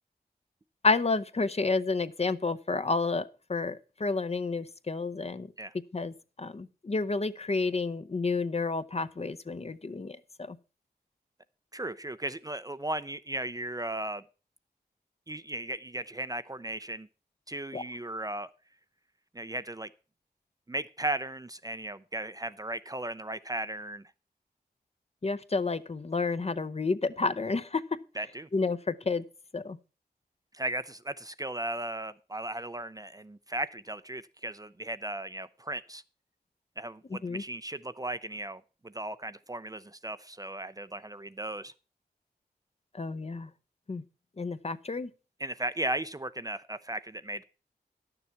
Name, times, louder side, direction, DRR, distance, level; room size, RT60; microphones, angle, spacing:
voice 1, 0.8-5.5 5.9-10.6 17.7-17.8 25.2-27.8 28.5-29.2 29.5-29.8 37.1-37.4 42.9-43.5 43.9-44.0 44.4-45.1, left 3 dB, 40° left, 12 dB, 0.7 m, -30 dB
voice 2, 11.7-14.2 15.3-17.1 17.5-18.5 19.3-19.9 20.7-24.1 28.2-28.5 30.5-36.0 36.8-41.7 45.4-47.4, right 1 dB, 20° right, 13 dB, 0.5 m, -36 dB
11.0 x 6.9 x 5.8 m, 0.34 s
wide cardioid pair, 60°, 17 cm